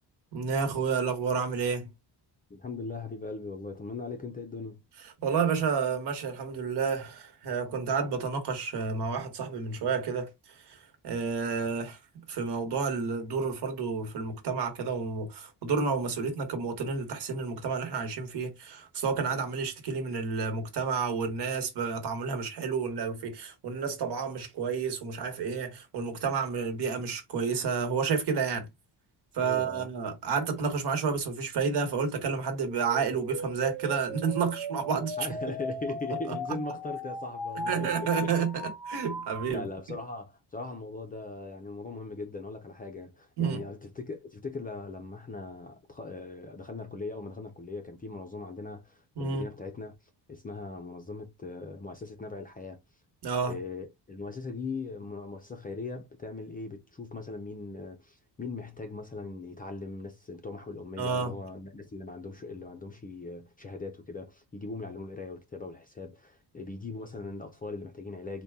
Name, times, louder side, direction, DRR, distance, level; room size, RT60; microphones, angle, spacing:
voice 1, 0.3-1.9 5.2-12.0 12.3-28.7 29.3-35.3 36.3-36.6 37.5-39.7 43.4-43.6 49.2-49.5 53.2-53.5 61.0-61.3, right 5 dB, 65° right, 1.2 m, -30 dB
voice 2, 2.5-4.8 29.4-29.9 35.2-37.9 38.2-38.3 39.5-50.0 50.3-52.8 53.5-68.4, left 3 dB, 20° left, 0.4 m, -40 dB
sound 1, 32.5-39.5, equal, 5° right, 1.1 m, -38 dB
4.0 x 2.2 x 3.4 m
wide cardioid pair, 170°, 43 cm